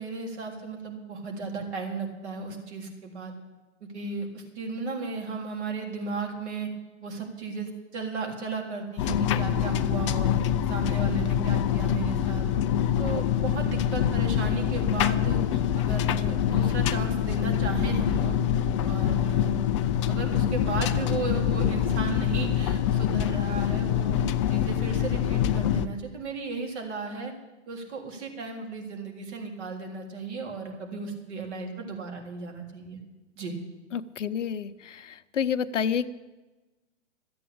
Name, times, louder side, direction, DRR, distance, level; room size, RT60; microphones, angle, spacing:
voice 1, 0.0-3.3 3.8-6.7 7.0-10.4 10.7-12.5 13.0-18.4 18.8-19.6 20.1-24.2 24.5-27.3 27.7-33.0 33.4-33.5, right 4 dB, 60° right, 2 dB, 3.5 m, -35 dB
sound 1, 9.0-25.9, left 9 dB, 25° left, 0.4 m, -25 dB
voice 2, 33.9-36.1, left 7 dB, 75° left, 11 dB, 0.8 m, -29 dB
13.0 x 8.7 x 8.7 m, 1.1 s
hypercardioid pair, 125°, 37 cm